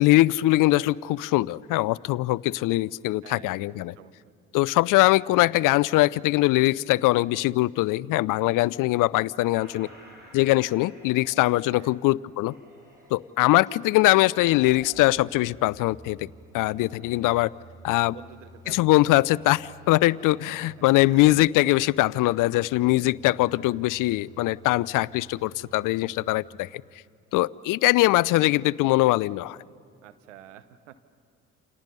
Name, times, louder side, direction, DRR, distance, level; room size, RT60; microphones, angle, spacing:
voice 1, 0.0-3.9 4.5-9.9 10.3-12.5 13.1-16.3 16.5-17.5 17.8-18.1 18.7-26.8 27.3-29.6, left 18 dB, 60° left, 23 dB, 0.5 m, -22 dB
voice 2, 3.2-4.1 11.7-12.0 18.1-19.0 21.1-21.3 30.0-30.9, right 11 dB, 90° right, 12 dB, 1.0 m, -48 dB
sound 1, 9.5-13.3 13.8-15.3 16.5-17.6 18.9-20.7, equal, 25° right, 7.9 m, -52 dB
sound 2, 12.4-26.4, right 2 dB, 10° right, 4.8 m, -53 dB
29.0 x 28.0 x 5.4 m, 2.3 s
hypercardioid pair, 50°, 36 cm